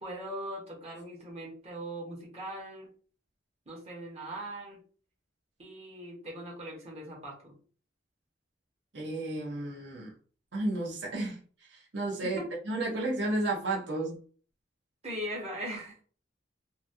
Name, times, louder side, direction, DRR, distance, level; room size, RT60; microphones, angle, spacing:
voice 1, 0.0-2.9 3.7-4.8 5.6-7.6 12.2-12.5 15.0-16.0, right 1 dB, 35° right, 1.2 m, -40 dB
voice 2, 8.9-10.1 10.5-14.2, right 2 dB, 70° right, 0.8 m, -33 dB
2.9 x 2.3 x 2.7 m
head